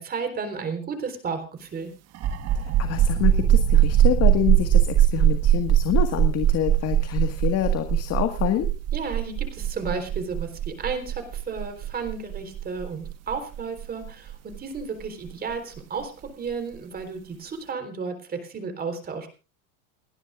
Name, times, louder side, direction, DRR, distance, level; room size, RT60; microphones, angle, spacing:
voice 1, 0.0-1.9 8.9-19.3, right 5 dB, 20° right, 7 dB, 4.0 m, -33 dB
sound 1, 2.1-15.5, right 11 dB, 35° right, 1.5 m, -21 dB
voice 2, 2.6-8.7, left 12 dB, 35° left, 6 dB, 1.8 m, -27 dB
30.0 x 11.0 x 2.5 m, 0.32 s
supercardioid pair, 135°, 43 cm